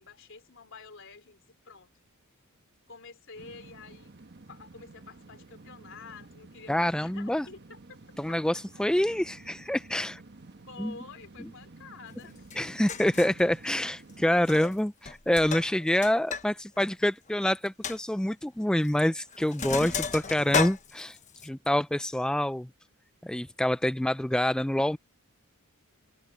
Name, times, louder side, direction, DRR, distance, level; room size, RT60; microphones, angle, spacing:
voice 1, 0.0-1.9 2.9-4.1 4.5-8.0 8.3-8.4 10.7-13.2, left 4 dB, 60° left, 3.5 m, -49 dB
sound 1, 3.4-14.8, right 2 dB, 50° right, 1.3 m, -51 dB
voice 2, 6.7-7.5 8.2-10.2 10.8-10.9 12.6-21.2 21.4-22.7 23.2-25.0, left 1 dB, 5° left, 0.3 m, -27 dB
Sink (filling or washing), 12.5-12.6 12.9-13.4 14.4-14.8 15.0-16.5 16.8-16.9 17.3-17.4 17.8-18.0 18.8-19.0 19.3-21.5, left 6 dB, 35° left, 1.2 m, -33 dB
open air
head